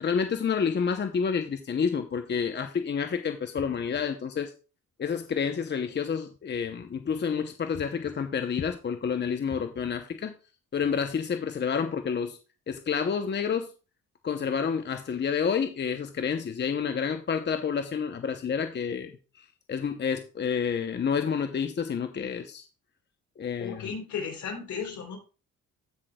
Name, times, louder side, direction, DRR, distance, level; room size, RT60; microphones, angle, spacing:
voice 1, 0.0-4.5 5.0-10.3 10.7-12.4 12.7-13.7 14.2-22.7 23.4-23.9, left 6 dB, 35° left, 0.8 m, -29 dB
voice 2, 23.6-25.2, left 6 dB, 70° left, 3.5 m, -35 dB
15.5 x 6.0 x 2.3 m
cardioid pair, 90°, 30 cm